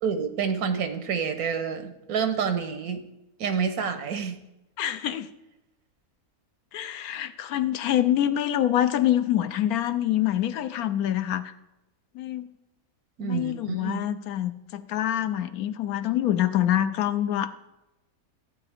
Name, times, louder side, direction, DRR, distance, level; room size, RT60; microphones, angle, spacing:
voice 1, 0.0-3.0 3.4-4.4 13.2-14.0, right 6 dB, 85° right, 8 dB, 1.5 m, -28 dB
voice 2, 4.8-5.3 6.7-11.4 12.1-12.5 13.2-17.5, left 12 dB, 85° left, 11 dB, 1.2 m, -25 dB
14.0 x 8.8 x 3.5 m, 0.97 s
omnidirectional pair, 1.5 m